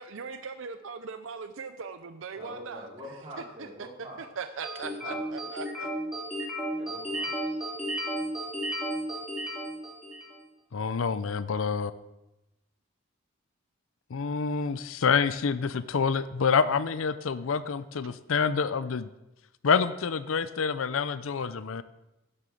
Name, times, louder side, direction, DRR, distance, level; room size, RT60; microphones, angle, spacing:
voice 1, 0.0-2.9 3.4-5.9 18.0-18.1, right 5 dB, 65° right, 9 dB, 0.6 m, -40 dB
voice 2, 2.3-4.2 4.8-5.5 6.8-7.5, equal, 25° right, -5 dB, 4.5 m, -45 dB
sound 1, 4.6-10.4, equal, 5° right, 2.8 m, -33 dB
voice 3, 10.7-11.9 14.1-19.1 19.6-21.8, left 5 dB, 70° left, 14 dB, 0.5 m, -27 dB
11.0 x 6.9 x 7.0 m, 0.97 s
head